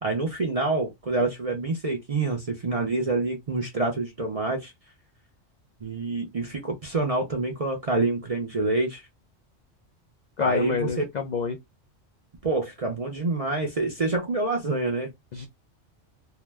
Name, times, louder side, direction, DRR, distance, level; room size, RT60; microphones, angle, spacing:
voice 1, 0.0-4.7 5.8-9.0 10.4-11.1 12.4-15.1, right 3 dB, 45° right, 0.5 m, -27 dB
voice 2, 10.4-11.6 15.3-15.5, left 5 dB, 65° left, 0.4 m, -27 dB
2.8 x 2.1 x 3.3 m
omnidirectional pair, 1.3 m